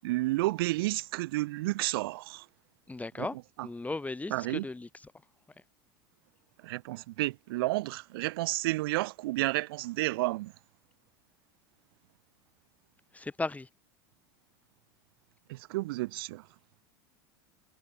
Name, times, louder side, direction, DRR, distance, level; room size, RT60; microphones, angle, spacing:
voice 1, 0.0-2.5 3.2-3.3 3.6-3.7 4.3-4.7 6.6-10.5 15.5-16.5, right 19 dB, 70° right, 7.3 m, -31 dB
voice 2, 2.9-3.4 3.6-5.1 13.1-13.7, left 3 dB, 10° left, 3.4 m, -36 dB
hypercardioid pair, 95°, 12 cm